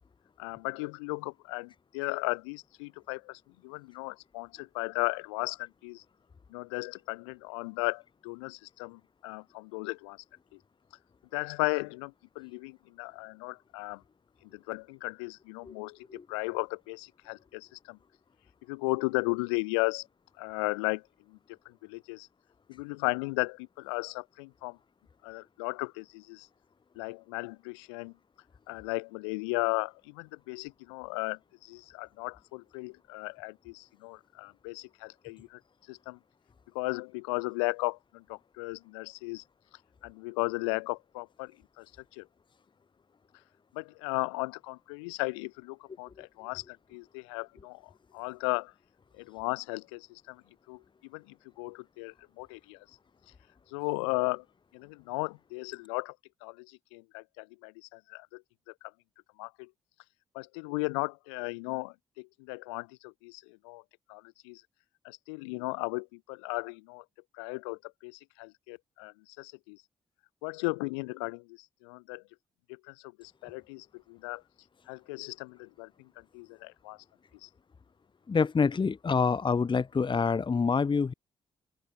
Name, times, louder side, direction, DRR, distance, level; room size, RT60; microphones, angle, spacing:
voice 1, 0.4-6.0 6.5-10.2 10.5-10.6 11.3-14.0 14.4-18.0 18.7-20.1 20.4-21.4 21.7-22.3 22.7-24.8 25.2-26.5 27.0-28.1 28.7-35.6 35.9-36.2 36.7-39.4 40.0-42.3 43.7-48.7 49.1-50.4 50.7-52.9 53.7-54.5 54.7-56.2 56.4-58.9 59.4-59.7 60.3-63.8 64.1-64.6 65.0-67.0 67.3-69.8 70.4-72.2 72.7-74.4 74.9-77.0 77.4-77.5, left 30 dB, 90° left, 2.0 m, -36 dB
voice 2, 78.3-81.1, left 5 dB, 35° left, 0.8 m, -26 dB
open air
hypercardioid pair, 40°, 14 cm